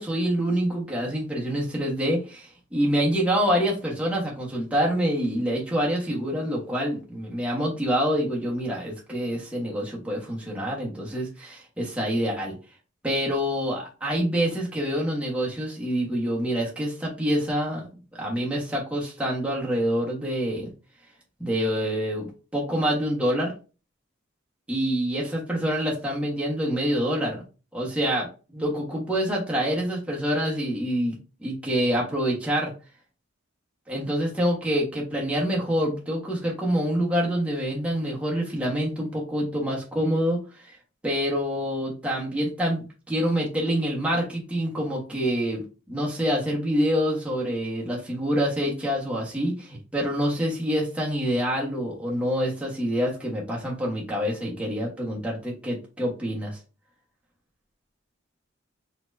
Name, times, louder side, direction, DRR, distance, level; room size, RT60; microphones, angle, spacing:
voice 1, 0.0-12.5 13.0-17.9 18.2-20.7 21.4-22.3 22.5-23.5 24.7-27.4 27.7-32.7 33.9-40.8 41.0-45.6 45.9-56.6, equal, 5° right, -4 dB, 1.4 m, -26 dB
4.3 x 3.9 x 2.7 m, 0.32 s
head